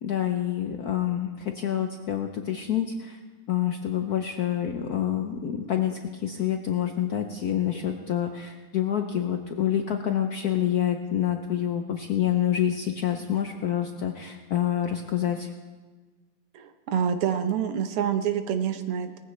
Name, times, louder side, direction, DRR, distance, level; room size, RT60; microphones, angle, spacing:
voice 1, 0.0-3.2 3.5-15.5, left 10 dB, 70° left, 5 dB, 0.9 m, -27 dB
voice 2, 16.5-19.2, right 8 dB, 90° right, 8 dB, 1.9 m, -27 dB
19.0 x 15.0 x 3.2 m, 1.3 s
omnidirectional pair, 2.4 m